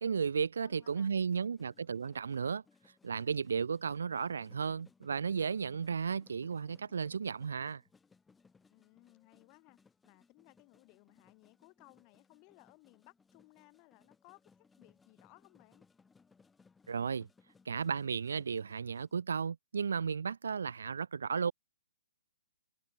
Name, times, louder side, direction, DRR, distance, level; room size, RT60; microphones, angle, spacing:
voice 1, 0.0-2.6 3.0-7.8 16.9-17.3 17.7-21.5, right 6 dB, 75° right, 0.3 m, -34 dB
voice 2, 0.6-1.1 8.7-15.9, left 32 dB, 25° left, 3.0 m, -62 dB
sound 1, 0.8-19.2, left 4 dB, 5° left, 1.3 m, -67 dB
hypercardioid pair, 165°, 0 cm